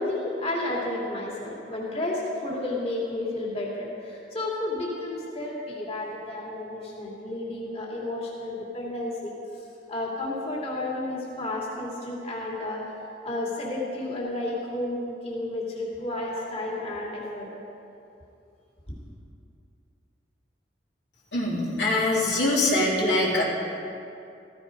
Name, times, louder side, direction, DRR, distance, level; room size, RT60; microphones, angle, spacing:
voice 1, 0.0-9.3 9.9-12.8 13.2-17.5 18.9-19.0, left 2 dB, 35° left, -4 dB, 2.7 m, -31 dB
voice 2, 21.3-23.4, left 2 dB, 75° left, -4 dB, 3.2 m, -23 dB
15.0 x 15.0 x 5.3 m, 2.7 s
head